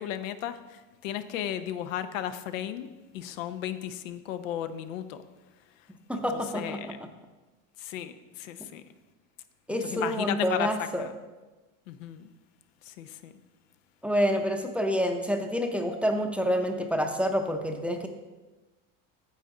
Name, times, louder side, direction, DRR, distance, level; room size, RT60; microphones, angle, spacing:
voice 1, 0.0-2.9 3.1-5.2 6.1-6.9 7.8-8.8 9.9-10.7 11.0-11.1 11.9-12.3 12.8-13.3, left 10 dB, 90° left, 11 dB, 0.8 m, -35 dB
voice 2, 6.1-6.9 9.7-11.0 14.0-18.1, equal, 5° right, 4 dB, 0.6 m, -28 dB
9.8 x 7.1 x 3.8 m, 1.2 s
supercardioid pair, 120°, 38 cm